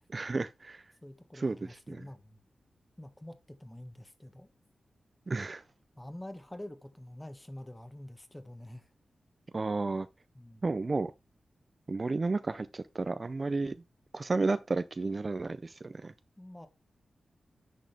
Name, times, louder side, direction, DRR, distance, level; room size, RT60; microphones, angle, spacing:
voice 1, 0.1-0.8 1.3-1.6 1.9-2.0 5.3-5.6 9.5-10.1 10.6-11.1 11.9-13.7 14.1-16.1, right 3 dB, 35° right, 0.4 m, -32 dB
voice 2, 1.0-2.4 3.0-4.5 6.0-8.9 10.3-10.6 16.4-16.7, left 1 dB, 10° left, 1.3 m, -47 dB
10.0 x 6.1 x 3.3 m
wide cardioid pair, 135°, 0 cm